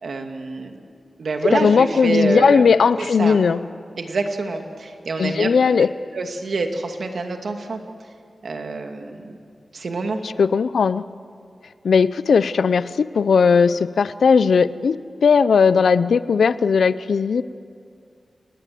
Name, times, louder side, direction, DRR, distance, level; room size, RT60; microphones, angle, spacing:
voice 1, 0.0-0.7 1.2-2.7 3.2-3.4 4.0-5.5 6.1-7.8 8.4-9.4 9.7-10.2, right 3 dB, 70° right, 4 dB, 2.4 m, -26 dB
voice 2, 1.5-3.6 5.2-5.9 10.2-11.0 11.8-15.0 15.2-17.4, left 5 dB, 90° left, 15 dB, 0.6 m, -17 dB
27.5 x 20.0 x 7.7 m, 2.4 s
wide cardioid pair, 90°, 0 cm